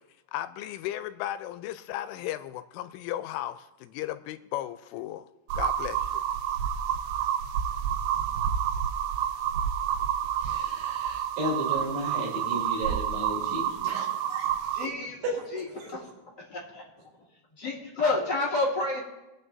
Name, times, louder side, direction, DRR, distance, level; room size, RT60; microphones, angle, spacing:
voice 1, 0.3-5.3 5.6-6.2, left 13 dB, 90° left, 11 dB, 3.1 m, -35 dB
sound 1, 5.5-14.9, right 9 dB, 85° right, 2.9 m, -29 dB
voice 2, 10.4-14.7 15.2-15.3, equal, 60° right, -4 dB, 5.8 m, -34 dB
voice 3, 14.7-16.1 16.5-16.8 17.6-19.0, left 2 dB, 30° left, -5 dB, 2.1 m, -30 dB
21.0 x 9.1 x 2.7 m, 0.98 s
omnidirectional pair, 5.6 m